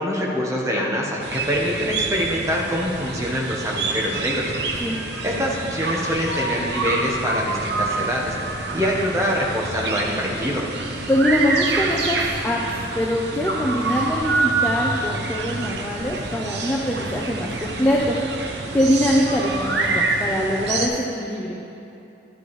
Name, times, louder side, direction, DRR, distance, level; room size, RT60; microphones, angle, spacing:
voice 1, 0.0-4.5 5.2-8.3 8.7-10.6, equal, 15° right, -3 dB, 1.2 m, -24 dB
sound 1, 1.2-20.9, right 3 dB, 75° right, 0.8 m, -27 dB
voice 2, 11.1-18.2 18.7-21.6, equal, 10° left, -5 dB, 0.6 m, -23 dB
11.5 x 10.5 x 3.2 m, 2.8 s
head